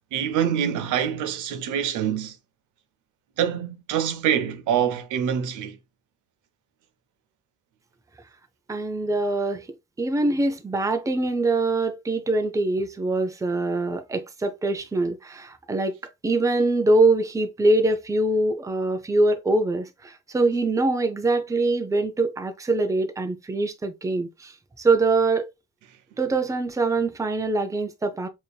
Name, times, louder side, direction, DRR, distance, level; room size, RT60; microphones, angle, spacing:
voice 1, 0.1-2.4 3.4-5.8, right 9 dB, 85° right, 0.6 m, -25 dB
voice 2, 8.7-9.7 10.0-15.9 16.2-24.5 24.8-25.5 26.2-28.3, right 2 dB, 10° right, 0.5 m, -23 dB
5.0 x 2.7 x 2.3 m
cardioid pair, 90°, 30 cm